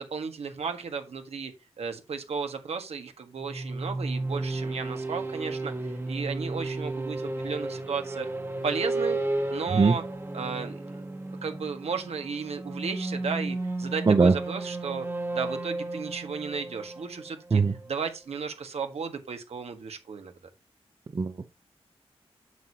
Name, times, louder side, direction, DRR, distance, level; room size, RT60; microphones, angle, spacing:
voice 1, 0.0-1.5 1.8-8.3 8.6-9.2 9.5-10.0 10.3-10.8 11.4-15.1 15.3-17.6 17.9-20.3, right 5 dB, 75° right, 1.7 m, -34 dB
sound 1, 3.4-18.0, right 2 dB, 20° right, 1.5 m, -33 dB
voice 2, 21.1-21.5, right 4 dB, 40° right, 0.7 m, -21 dB
9.2 x 6.6 x 2.9 m
cardioid pair, 75°, 11 cm